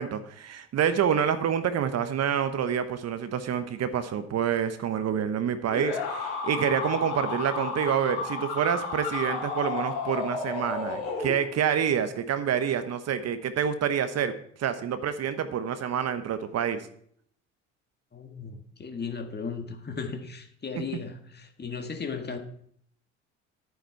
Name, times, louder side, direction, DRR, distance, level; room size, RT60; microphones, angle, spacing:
voice 1, 0.0-14.3 14.6-16.8 20.7-20.8, right 8 dB, 45° right, 10 dB, 1.0 m, -27 dB
sound 1, 5.7-11.8, left 4 dB, 75° left, 3.7 m, -32 dB
voice 2, 18.1-22.4, left 5 dB, 30° left, 5 dB, 1.8 m, -36 dB
10.5 x 9.4 x 4.5 m, 0.63 s
hypercardioid pair, 55°, 35 cm